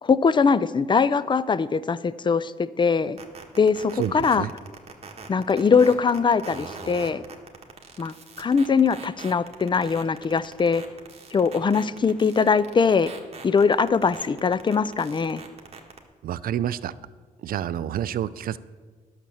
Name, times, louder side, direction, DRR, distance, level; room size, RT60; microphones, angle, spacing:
voice 1, 0.0-3.2 3.6-4.5 5.3-7.2 8.0-10.8 11.3-13.1 13.4-15.4, left 5 dB, 30° left, 17 dB, 0.5 m, -21 dB
sound 1, 3.2-16.0, right 4 dB, 40° right, 1.6 m, -41 dB
voice 2, 4.0-4.5 16.2-16.9 17.4-18.6, right 10 dB, 65° right, 16 dB, 0.5 m, -28 dB
10.5 x 6.7 x 7.1 m, 1.4 s
supercardioid pair, 65°, 16 cm